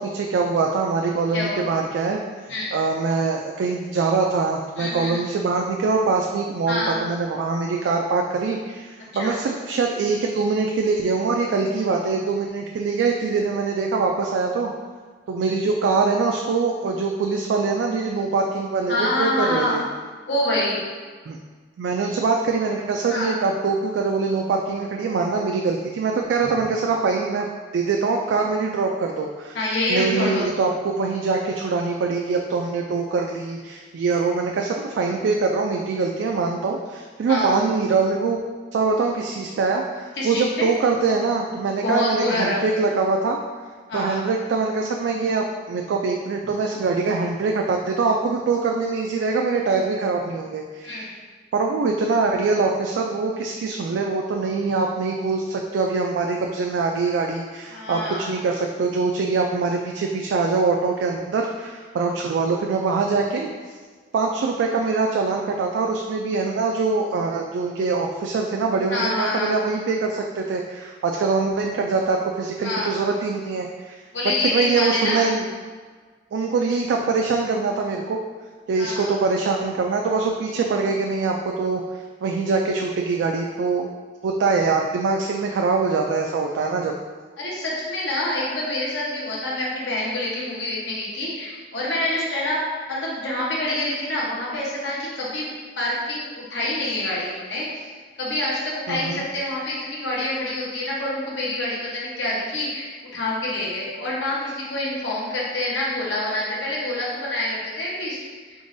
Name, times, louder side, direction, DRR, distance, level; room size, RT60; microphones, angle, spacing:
voice 1, 0.0-2.2 2.7-14.7 15.3-19.8 21.3-21.4 21.8-27.5 27.7-29.6 29.9-38.4 38.7-43.4 43.9-51.1 51.5-63.7 64.1-74.0 74.2-75.5 76.3-78.2 78.7-81.8 82.2-83.9 84.2-87.0 98.9-99.2, right 4 dB, 85° right, 1 dB, 0.3 m, -23 dB
voice 2, 1.3-1.6 2.5-2.7 4.8-5.2 6.7-7.0 9.1-9.3 18.9-19.8 20.3-20.8 23.1-23.4 29.5-30.5 37.3-37.5 40.2-40.7 41.8-42.6 43.9-44.3 50.8-51.1 57.7-58.3 68.9-69.6 72.6-72.9 74.1-75.3 78.7-79.2 87.4-92.6 92.9-95.5 95.8-97.9 98.2-102.9 103.1-108.2, left 1 dB, 80° left, -5 dB, 1.0 m, -26 dB
3.9 x 3.7 x 2.6 m, 1.5 s
head